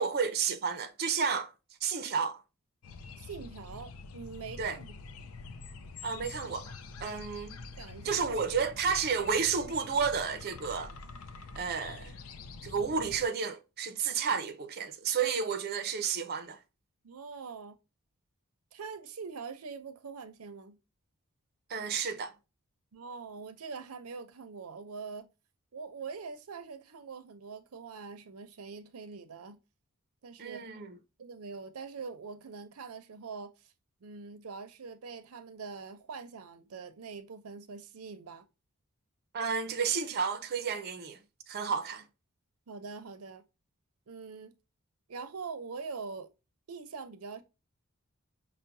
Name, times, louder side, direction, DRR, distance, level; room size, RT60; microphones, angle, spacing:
voice 1, 0.0-1.5 1.8-2.4 4.6-4.8 6.0-6.7 7.0-7.6 8.0-10.9 11.6-12.1 12.6-16.6 21.7-22.3 30.4-31.0 39.3-41.2 41.5-42.0, right 6 dB, 45° right, 0.5 m, -31 dB
sound 1, 2.8-13.3, left 3 dB, 70° left, 0.5 m, -46 dB
voice 2, 3.2-5.0 7.1-7.2 7.6-8.2 17.0-17.8 18.7-20.8 22.9-25.3 25.7-29.6 30.2-30.7 31.2-33.7 34.0-38.4 42.7-43.4 44.1-44.5 45.1-46.3 46.7-47.4, right 5 dB, 90° right, 0.6 m, -43 dB
5.6 x 2.1 x 2.6 m
head